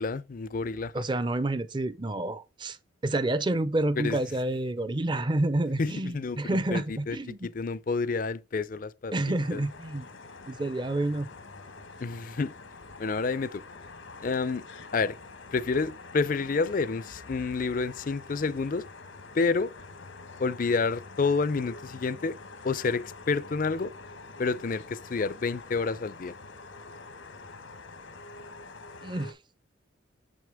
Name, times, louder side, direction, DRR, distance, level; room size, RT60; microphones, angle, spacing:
voice 1, 0.0-1.0 4.0-4.2 5.8-7.2 7.4-9.6 12.0-12.5 13.0-13.6 14.2-14.6 14.9-15.2 15.5-18.9 19.3-19.7 20.4-22.4 22.6-23.9 24.4-26.3, left 4 dB, 45° left, 0.5 m, -29 dB
voice 2, 0.9-2.8 3.0-7.5 9.1-10.1 10.5-11.3 29.0-29.4, right 1 dB, 25° right, 0.5 m, -29 dB
sound 1, 9.4-29.3, left 3 dB, 90° left, 1.3 m, -46 dB
7.3 x 6.3 x 3.5 m
head